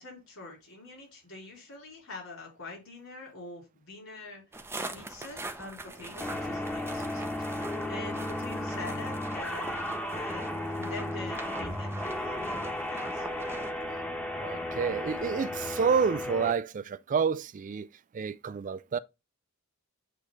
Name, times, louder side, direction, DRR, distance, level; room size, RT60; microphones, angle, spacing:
voice 1, 0.0-13.3, left 3 dB, 65° left, 4.3 m, -45 dB
sound 1, 4.5-13.7, right 2 dB, 10° right, 0.7 m, -42 dB
sound 2, 6.2-16.5, left 1 dB, 5° left, 1.1 m, -34 dB
voice 2, 14.4-17.9 18.1-19.0, right 6 dB, 35° right, 0.3 m, -29 dB
8.4 x 3.2 x 3.8 m
head